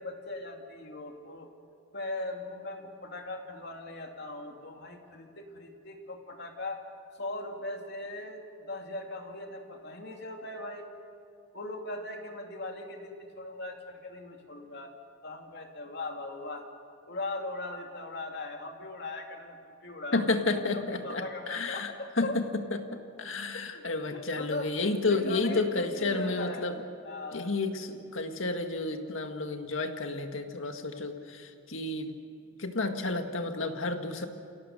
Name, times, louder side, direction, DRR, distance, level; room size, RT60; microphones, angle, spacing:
voice 1, 0.0-1.5 1.9-6.8 7.2-10.9 11.5-14.9 15.2-16.6 17.1-20.2 20.5-22.4 23.5-26.7 27.0-27.5, left 2 dB, 60° left, 3 dB, 2.6 m, -39 dB
voice 2, 20.1-21.9 22.2-22.4 23.2-26.7 27.3-32.1 32.6-34.3, left 3 dB, 75° left, 5 dB, 1.9 m, -31 dB
28.5 x 17.5 x 6.6 m, 2.6 s
head